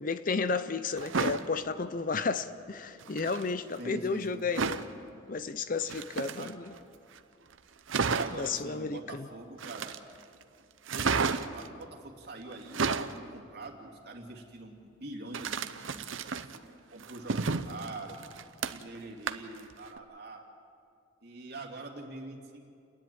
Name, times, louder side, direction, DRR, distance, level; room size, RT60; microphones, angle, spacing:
voice 1, 0.0-4.8 5.3-6.7 8.3-9.3, left 4 dB, 40° left, 0.6 m, -32 dB
sound 1, 1.0-1.4 3.0-3.5 4.5-4.9 5.8-6.8 7.2-7.3 7.5-7.6 7.9-8.5 9.6-10.2 10.9-11.7 12.5-13.2 15.3-16.6 17.0-19.0 19.3-19.6 20.0-20.1, right 5 dB, 80° right, 0.8 m, -32 dB
voice 2, 3.8-4.4 6.4-6.5 8.2-9.9 10.9-18.1 18.7-20.5 21.2-22.6, right 2 dB, 50° right, 2.6 m, -45 dB
30.0 x 10.5 x 9.1 m
head